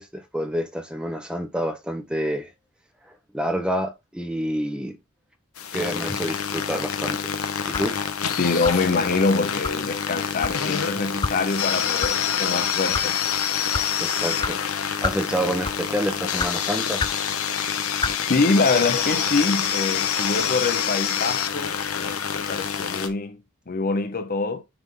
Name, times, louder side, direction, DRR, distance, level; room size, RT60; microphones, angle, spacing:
voice 1, 0.0-2.5 3.0-5.0 5.7-7.3 7.6-8.0 14.0-14.6 15.0-17.2 20.4-20.5, equal, 5° right, 0.9 m, -28 dB
sound 1, 5.6-23.1, left 8 dB, 70° left, 0.9 m, -26 dB
sound 2, 7.7-8.0 8.6-8.9 9.6-9.8 10.4-10.6 11.2-11.4 12.0-12.1 12.8-13.1 13.7-13.9 14.4-14.5 15.0-15.2 15.6-15.9 16.4-16.5 17.0-17.2 18.0-18.2, left 4 dB, 20° left, 0.3 m, -28 dB
voice 2, 8.4-13.2 18.3-23.4 23.7-24.6, left 3 dB, 45° left, 0.8 m, -25 dB
sound 3, 18.7-21.5 21.9-22.0 22.2-22.3, right 4 dB, 70° right, 1.7 m, -39 dB
9.2 x 3.6 x 3.7 m
head